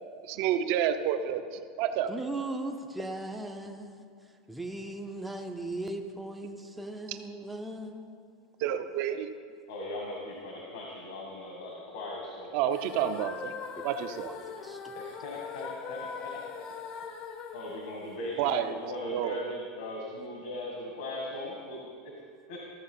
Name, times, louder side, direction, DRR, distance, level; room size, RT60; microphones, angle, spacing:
voice 1, 0.2-2.1 7.1-7.2 8.6-9.3 12.5-13.6 13.8-14.3 18.4-18.8 19.1-19.5, right 10 dB, 45° right, 9 dB, 0.7 m, -29 dB
voice 2, 2.1-4.1 4.5-8.2 14.2-14.9, right 2 dB, 5° right, 3 dB, 0.5 m, -38 dB
voice 3, 9.7-12.6 14.9-16.4 17.5-22.1 22.5-22.6, left 1 dB, 70° left, -2 dB, 1.9 m, -39 dB
sound 1, 12.7-18.8, left 6 dB, 35° left, 0.8 m, -41 dB
13.5 x 7.3 x 5.5 m, 2.1 s
supercardioid pair, 170°, 3 cm